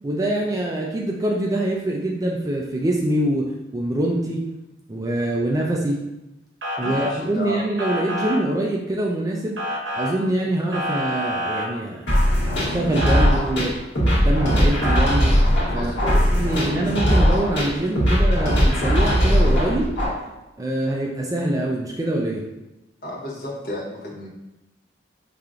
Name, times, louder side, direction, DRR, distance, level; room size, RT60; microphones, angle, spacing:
voice 1, 0.0-4.5 4.9-6.0 6.8-9.6 10.0-13.7 14.0-15.4 15.7-15.9 16.3-19.9 20.6-22.4, right 1 dB, 20° right, -1 dB, 0.3 m, -24 dB
Motor vehicle (road) / Siren, 6.6-7.1 7.8-8.4 9.6-10.1 10.7-11.7 13.0-13.3 14.8-15.0, equal, 90° right, 0.8 m, -27 dB
voice 2, 6.8-7.6 15.7-16.8 23.0-24.3, left 1 dB, 60° left, -4 dB, 1.0 m, -33 dB
sound 1, 12.1-20.1, equal, 75° left, 1.2 m, -19 dB
4.8 x 2.8 x 2.4 m, 0.96 s
head